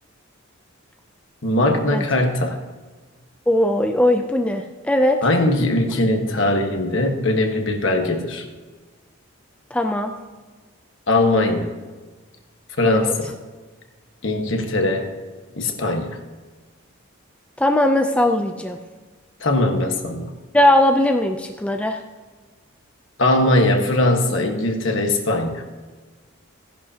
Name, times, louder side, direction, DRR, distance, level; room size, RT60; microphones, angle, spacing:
voice 1, 1.4-2.6 5.2-8.5 11.1-11.7 12.8-13.3 14.2-15.1 15.5-16.2 19.4-20.3 23.2-25.6, left 1 dB, 60° left, 3 dB, 1.4 m, -20 dB
voice 2, 3.5-5.2 9.7-10.1 12.8-13.1 17.6-18.8 20.5-22.0, left 1 dB, 5° left, 4 dB, 0.4 m, -19 dB
15.0 x 10.5 x 2.8 m, 1.3 s
head